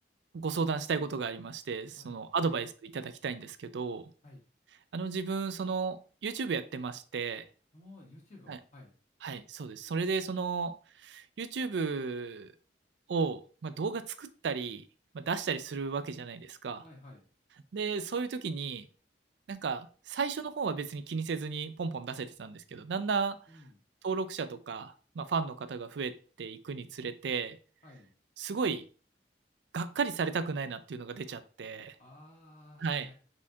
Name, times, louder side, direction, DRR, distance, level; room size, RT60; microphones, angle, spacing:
voice 1, 0.3-4.1 4.9-7.4 8.5-8.6 9.2-10.7 11.0-12.5 13.1-14.8 15.1-16.8 17.7-18.9 19.5-23.4 24.0-27.6 28.4-28.9 29.7-32.0 32.8-33.1, right 5 dB, 80° right, 12 dB, 0.4 m, -34 dB
voice 2, 7.7-8.9 16.8-17.2 23.5-23.8 27.8-28.1 32.0-33.1, left 2 dB, 40° left, -2 dB, 1.2 m, -53 dB
4.3 x 3.6 x 2.8 m, 0.39 s
head